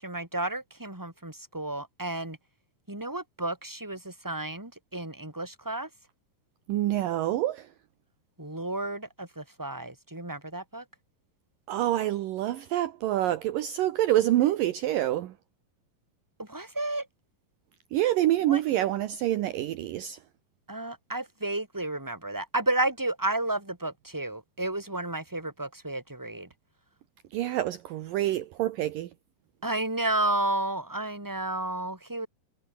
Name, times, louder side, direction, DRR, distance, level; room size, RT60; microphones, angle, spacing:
voice 1, 0.0-2.4 2.9-5.9 8.4-10.8 16.4-17.1 18.5-18.6 20.7-26.5 29.6-32.3, right 2 dB, 5° right, 4.8 m, -32 dB
voice 2, 6.7-7.7 11.7-15.3 17.9-20.2 27.3-29.1, right 13 dB, 70° right, 2.5 m, -27 dB
omnidirectional pair, 4.4 m